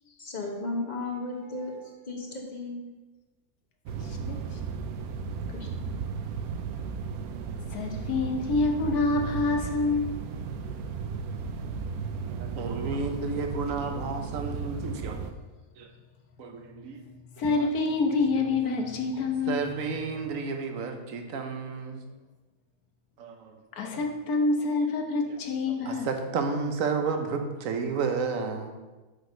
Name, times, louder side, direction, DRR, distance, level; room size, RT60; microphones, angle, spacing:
voice 1, 0.2-2.8 5.5-5.7, left 2 dB, 35° left, 1 dB, 1.0 m, -35 dB
sound 1, 3.9-15.3, right 5 dB, 90° right, 1.1 m, -35 dB
voice 2, 4.0-4.4 7.7-10.3 17.4-19.6 23.7-26.1, left 3 dB, 85° left, 3 dB, 1.4 m, -27 dB
voice 3, 12.2-15.2 15.8-15.9 16.4-17.0 17.6-17.7 18.4-18.5 19.2-22.0 23.2-23.5 25.2-25.4 25.7-28.7, right 4 dB, 65° right, 5 dB, 1.2 m, -32 dB
6.1 x 5.2 x 5.0 m, 1.2 s
omnidirectional pair, 1.5 m